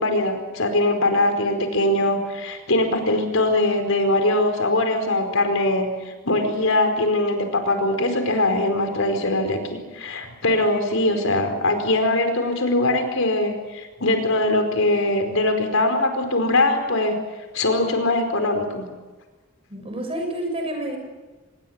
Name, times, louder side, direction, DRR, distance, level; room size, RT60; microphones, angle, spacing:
voice 1, 0.0-5.9 6.2-17.2 17.5-18.8, left 2 dB, 75° left, 6 dB, 4.7 m, -21 dB
voice 2, 19.7-21.0, right 1 dB, 25° right, 3 dB, 6.4 m, -29 dB
26.0 x 21.0 x 8.9 m, 1.2 s
head